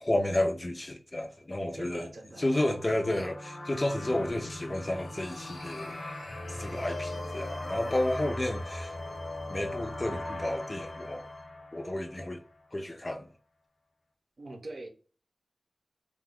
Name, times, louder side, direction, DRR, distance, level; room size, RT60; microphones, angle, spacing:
voice 1, 0.0-2.1 2.4-6.0 6.5-8.9 9.5-11.2 11.7-12.4 12.7-13.3, left 1 dB, 30° left, 0.4 m, -31 dB
voice 2, 1.7-2.6 14.4-14.9, right 2 dB, 60° right, 0.6 m, -43 dB
sound 1, 2.3-12.6, left 1 dB, 60° left, 0.7 m, -40 dB
sound 2, 3.6-8.3, left 1 dB, 90° left, 0.9 m, -48 dB
sound 3, 6.6-11.5, left 1 dB, 20° right, 0.8 m, -49 dB
2.5 x 2.3 x 3.5 m
wide cardioid pair, 95°, 0 cm